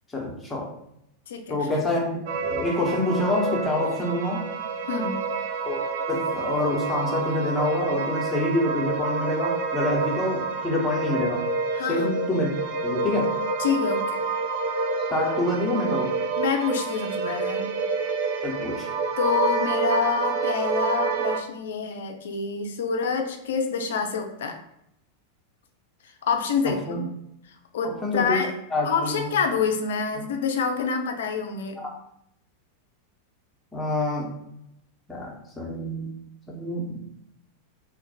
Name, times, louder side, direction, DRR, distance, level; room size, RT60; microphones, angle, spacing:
voice 1, 0.1-0.7 1.5-2.1 2.4-4.4 5.6-5.8 6.1-11.4 11.9-12.5 12.8-13.3 15.1-16.1 18.4-18.9 26.9-27.0 27.8-28.4 28.7-29.3 31.8-31.9 33.7-34.3 35.1-36.1 36.5-37.0, left 2 dB, 15° left, -2 dB, 1.0 m, -26 dB
voice 2, 1.3-1.7 4.8-5.2 11.7-12.2 13.6-14.2 16.4-17.7 19.2-24.6 26.0-27.1 27.7-28.5 28.8-31.8, left 5 dB, 60° left, 5 dB, 0.5 m, -27 dB
sound 1, 2.3-21.4, right 4 dB, 50° right, 0.4 m, -28 dB
3.2 x 2.5 x 4.0 m, 0.77 s
figure-of-eight pair, 90°, 0 cm